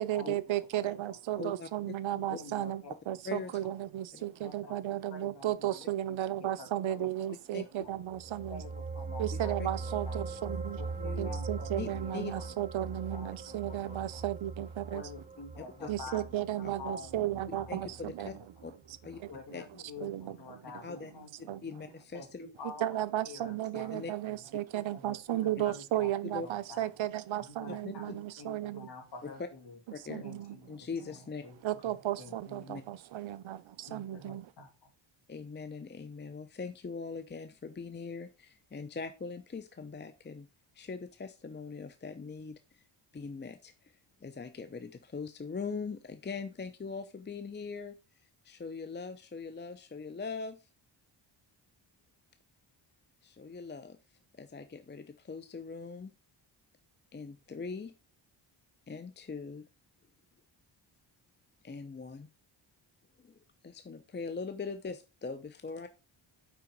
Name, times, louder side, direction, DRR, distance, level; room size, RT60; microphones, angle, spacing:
voice 1, 0.0-8.6 9.2-10.8 11.2-15.0 15.9-18.3 19.2-19.3 20.0-20.4 21.4-21.6 22.8-28.9 30.1-30.6 31.6-34.5, right 13 dB, 70° right, 0.7 m, -34 dB
voice 2, 0.8-1.4 2.1-3.9 4.4-7.1 7.5-7.9 8.5-10.2 10.8-14.2 14.9-18.0 18.3-18.5 19.3-21.6 22.1-24.3 24.9-26.9 27.4-29.8 30.2-32.9 33.9-34.9, left 3 dB, 55° left, 2.6 m, -49 dB
voice 3, 1.4-1.7 2.3-2.4 3.2-3.5 4.1-4.2 7.5-7.6 9.3-9.7 11.0-11.3 11.8-12.3 15.8-15.9 16.6-16.7 17.5-18.3 18.6-18.7 19.0-19.2 19.5-19.6 20.8-21.1 21.6-22.5 23.7-24.1 26.2-26.5 27.8-27.9 29.2-29.3 29.9-30.3 30.7-31.4 32.7-32.8 35.3-40.5 40.7-42.8 43.1-50.7 53.2-54.0 54.3-56.1 57.1-57.9 58.9-59.7 61.6-62.3 63.2-63.4 63.6-65.9, left 4 dB, 25° left, 0.6 m, -41 dB
sound 1, 8.0-18.7 19.0-19.2, right 4 dB, 15° right, 0.7 m, -40 dB
5.8 x 4.9 x 5.2 m
cardioid pair, 85°, 48 cm